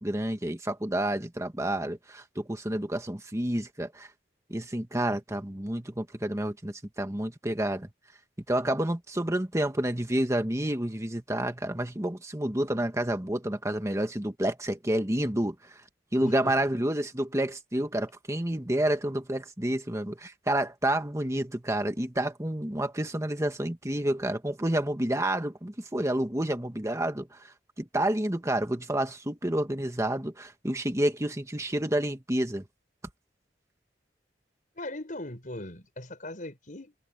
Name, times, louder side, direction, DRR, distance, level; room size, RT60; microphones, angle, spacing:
voice 1, 0.0-4.1 4.5-7.9 8.5-15.8 16.1-32.6, right 1 dB, 15° right, 1.4 m, -29 dB
voice 2, 16.2-16.5 34.8-37.0, left 1 dB, 45° left, 6.0 m, -39 dB
open air
head